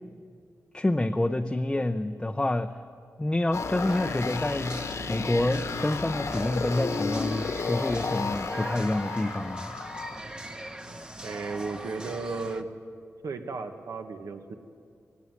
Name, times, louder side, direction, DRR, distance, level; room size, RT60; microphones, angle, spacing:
voice 1, 0.7-2.8 3.2-4.8 5.1-9.7, left 1 dB, 15° left, 6 dB, 0.6 m, -28 dB
sound 1, 3.5-10.2, left 4 dB, 60° left, 1.2 m, -32 dB
sound 2, 3.8-12.6, right 1 dB, 15° right, 1.0 m, -41 dB
voice 2, 11.2-12.7 13.2-14.5, right 4 dB, 80° right, 6 dB, 1.6 m, -34 dB
18.5 x 16.5 x 9.7 m, 2.2 s
wide cardioid pair, 120°, 6 cm